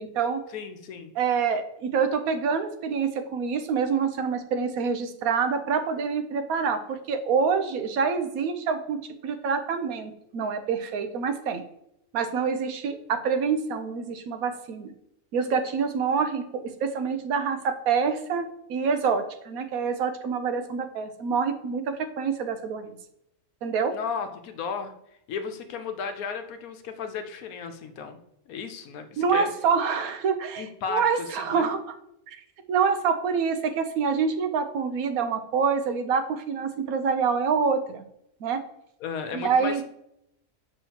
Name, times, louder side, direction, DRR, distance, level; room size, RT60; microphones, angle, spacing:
voice 1, 0.0-0.4 1.2-11.6 12.1-14.9 15.3-16.4 16.8-22.9 23.6-23.9 29.2-31.8 32.3-32.4 32.7-38.0 38.4-38.6 39.3-39.8, right 6 dB, 85° right, 8 dB, 1.2 m, -26 dB
voice 2, 0.5-1.1 23.9-24.9 25.3-28.2 28.5-29.5 30.6-31.7 39.0-39.8, left 6 dB, 85° left, 7 dB, 1.2 m, -34 dB
7.2 x 5.2 x 2.9 m, 0.77 s
omnidirectional pair, 1.5 m